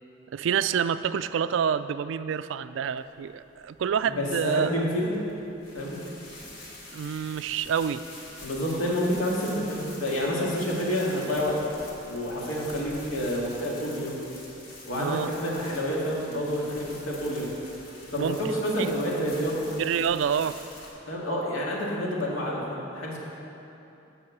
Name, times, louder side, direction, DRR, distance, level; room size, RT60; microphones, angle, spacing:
voice 1, 0.3-4.7 6.9-8.0 14.9-15.3 18.2-18.9 19.8-20.6, right 7 dB, 70° right, 14 dB, 0.3 m, -28 dB
sound 1, 3.0-20.9, left 2 dB, 65° left, 2.0 m, -46 dB
voice 2, 4.0-5.1 5.7-6.0 8.4-11.6 12.1-14.2 14.9-17.5 18.1-19.8 21.1-23.2, equal, 85° left, -4 dB, 2.0 m, -28 dB
9.4 x 5.4 x 7.2 m, 2.9 s
head